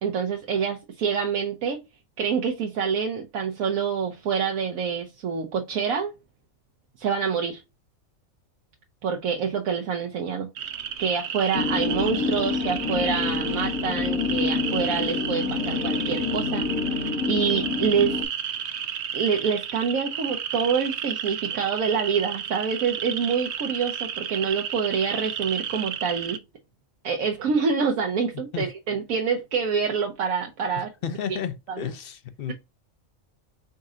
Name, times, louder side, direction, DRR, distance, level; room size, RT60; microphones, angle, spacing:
voice 1, 0.0-1.8 2.2-6.1 7.0-7.6 9.0-10.5 11.0-16.7 17.3-18.2 19.1-26.4 27.0-30.9, right 6 dB, 80° right, 1.2 m, -26 dB
sound 1, 10.6-26.4, right 8 dB, 60° right, 0.8 m, -32 dB
sound 2, 11.5-18.2, left 5 dB, 85° left, 1.4 m, -27 dB
voice 2, 30.7-32.5, left 8 dB, 55° left, 0.7 m, -32 dB
5.3 x 3.7 x 2.4 m
omnidirectional pair, 1.4 m